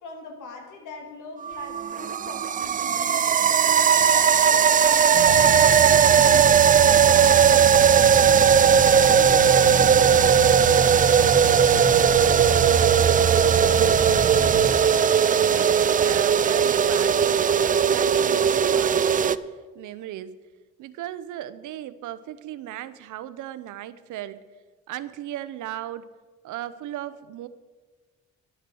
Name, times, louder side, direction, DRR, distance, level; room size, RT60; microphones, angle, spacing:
voice 1, 0.0-3.4 3.8-8.6 8.9-11.8, left 3 dB, 85° left, 2 dB, 2.2 m, -42 dB
sound 1, 1.4-19.4, right 7 dB, 30° right, 0.4 m, -18 dB
sound 2, 5.1-14.7, right 4 dB, 55° right, 1.6 m, -28 dB
voice 2, 15.3-20.4 20.8-24.4 24.9-26.1 26.4-27.5, right 12 dB, 80° right, 15 dB, 0.7 m, -36 dB
11.5 x 8.9 x 6.2 m, 1.4 s
cardioid pair, 90°, 30 cm